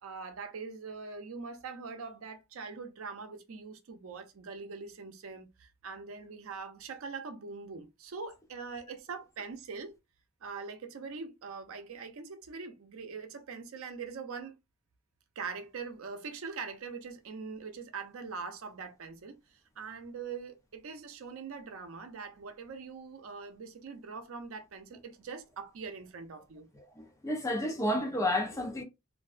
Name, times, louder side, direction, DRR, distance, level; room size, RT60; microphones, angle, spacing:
voice 1, 0.0-9.9 10.4-14.6 15.4-26.7, right 5 dB, 85° right, 0.5 m, -42 dB
voice 2, 26.8-28.8, left 1 dB, 15° left, 0.5 m, -31 dB
2.5 x 2.1 x 2.4 m
head